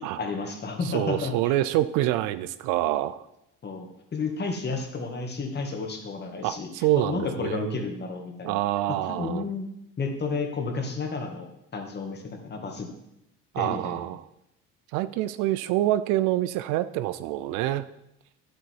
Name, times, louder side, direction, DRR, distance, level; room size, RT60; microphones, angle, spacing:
voice 1, 0.0-1.5 3.6-8.6 9.0-9.7 10.0-11.5 11.7-12.9 13.6-14.1, left 4 dB, 35° left, 3 dB, 2.1 m, -32 dB
voice 2, 0.8-3.2 6.4-7.8 8.4-9.5 13.5-14.3 14.9-17.9, right 14 dB, 90° right, 14 dB, 0.5 m, -26 dB
10.0 x 8.0 x 4.7 m, 0.84 s
cardioid pair, 110°, 29 cm